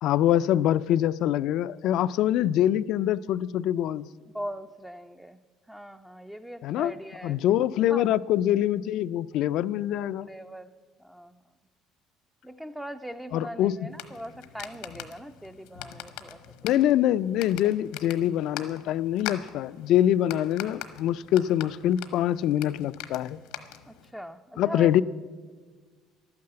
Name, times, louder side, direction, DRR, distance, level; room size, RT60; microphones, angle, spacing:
voice 1, 0.0-4.1 6.6-6.9 7.2-10.3 13.3-13.8 16.6-23.4 24.6-25.0, left 12 dB, 65° left, 16 dB, 0.3 m, -24 dB
voice 2, 4.3-5.4 5.7-7.4 7.9-8.1 9.9-10.7 11.0-11.4 12.4-16.4 17.6-17.7 23.9-24.9, equal, 5° right, 7 dB, 0.4 m, -40 dB
sound 1, 13.9-24.1, left 11 dB, 90° left, 1.1 m, -42 dB
12.0 x 9.5 x 7.7 m, 1.5 s
cardioid pair, 130°, 0 cm